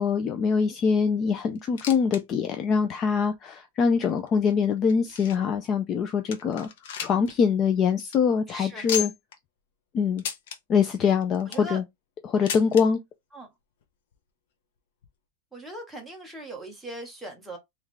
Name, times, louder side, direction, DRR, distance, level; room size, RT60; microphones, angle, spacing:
voice 1, 0.0-6.7 7.0-9.1 9.9-10.2 10.7-11.8 12.2-13.0, left 6 dB, 25° left, 0.4 m, -24 dB
sound 1, 1.5-2.2 2.5-2.6 3.3-3.4 4.1-5.6 6.0-6.1 6.3-7.3 7.6-7.7 8.0-8.2 8.9-9.4 10.2-10.6 11.2-11.7 12.5-12.8 13.8-13.9 14.1-14.2 15.0-15.1, left 8 dB, 65° left, 1.0 m, -34 dB
voice 2, 8.5-8.9 11.5-11.8 13.3-13.5 15.5-17.6, right 1 dB, ahead, 1.1 m, -39 dB
3.6 x 3.1 x 3.2 m
supercardioid pair, 165°, 0 cm